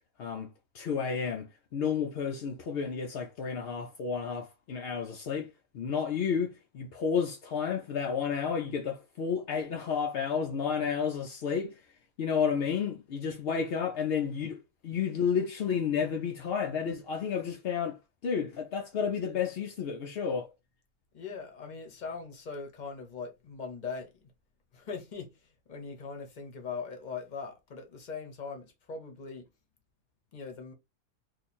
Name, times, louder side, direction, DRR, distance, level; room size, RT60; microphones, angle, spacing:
voice 1, 0.2-11.9 12.2-20.5, left 6 dB, 70° left, 0.5 m, -31 dB
voice 2, 21.1-24.3 24.7-29.5 30.3-30.7, left 5 dB, 40° left, 0.8 m, -41 dB
2.8 x 2.4 x 4.1 m
omnidirectional pair, 1.5 m